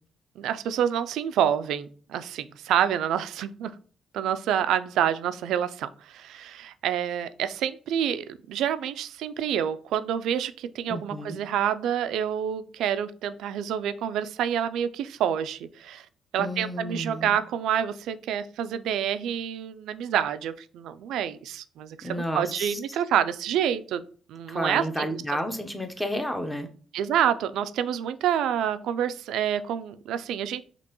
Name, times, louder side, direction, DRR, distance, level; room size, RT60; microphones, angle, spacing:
voice 1, 0.4-3.7 4.1-16.1 16.3-24.0 24.3-25.1 26.9-30.6, right 9 dB, 85° right, 12 dB, 0.3 m, -28 dB
voice 2, 10.9-11.4 16.4-17.4 22.0-22.8 24.5-26.7, equal, 5° left, 6 dB, 0.7 m, -31 dB
5.2 x 2.9 x 2.9 m, 0.42 s
cardioid pair, 90°, 0 cm